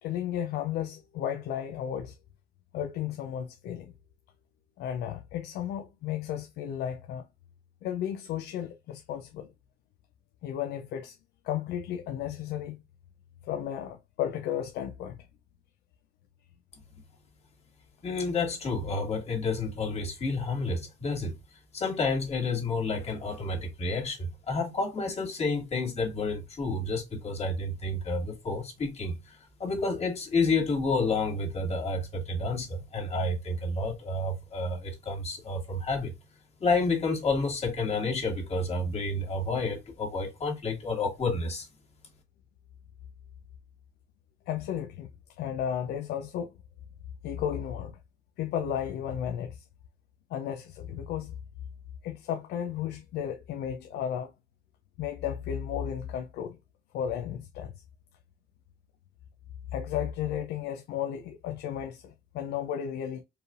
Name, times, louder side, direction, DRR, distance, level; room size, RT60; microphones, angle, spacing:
voice 1, 0.0-2.1 2.7-3.9 4.8-7.2 7.8-9.5 10.4-11.2 11.4-12.8 13.4-15.2 44.5-45.1 45.4-46.5 47.2-48.0 48.4-49.6 50.3-51.4 52.0-54.3 55.0-56.6 56.9-57.7 59.7-63.2, left 9 dB, 75° left, 0.6 m, -33 dB
voice 2, 18.0-21.4 21.7-36.1 36.6-41.7, left 3 dB, 40° left, 2.0 m, -30 dB
4.7 x 3.3 x 2.5 m
cardioid pair, 110°, 17 cm